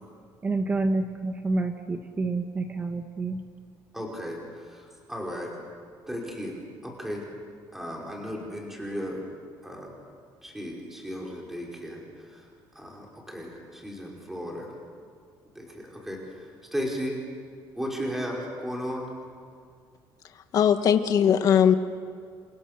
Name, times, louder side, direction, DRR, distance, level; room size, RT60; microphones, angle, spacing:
voice 1, 0.4-3.4, right 3 dB, 20° right, 6 dB, 1.3 m, -28 dB
voice 2, 3.9-4.4 4.7-5.5 6.1-6.6 6.8-7.3 7.7-9.2 9.6-9.9 10.4-12.0 12.3-12.4 12.7-14.7 15.6-16.4 16.7-17.2 17.8-19.1, equal, 5° right, -2 dB, 5.2 m, -35 dB
voice 3, 20.5-21.7, left 8 dB, 45° left, 8 dB, 1.7 m, -19 dB
30.0 x 28.5 x 6.8 m, 2.2 s
cardioid pair, 160°, 8 cm